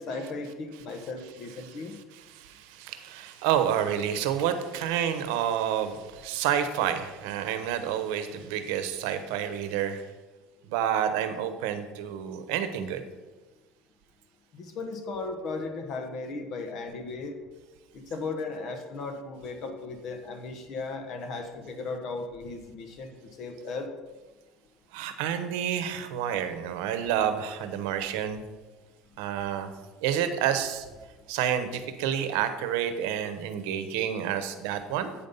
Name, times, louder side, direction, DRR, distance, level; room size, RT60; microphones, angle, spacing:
voice 1, 0.0-1.9 14.5-17.4 17.9-23.9, left 3 dB, 45° left, 5 dB, 1.0 m, -36 dB
voice 2, 1.6-10.0 10.7-13.0 24.9-28.4 29.2-29.7 30.0-30.9 31.3-35.1, right 9 dB, 80° right, 10 dB, 0.9 m, -29 dB
8.6 x 5.3 x 5.5 m, 1.2 s
cardioid pair, 145°, 0 cm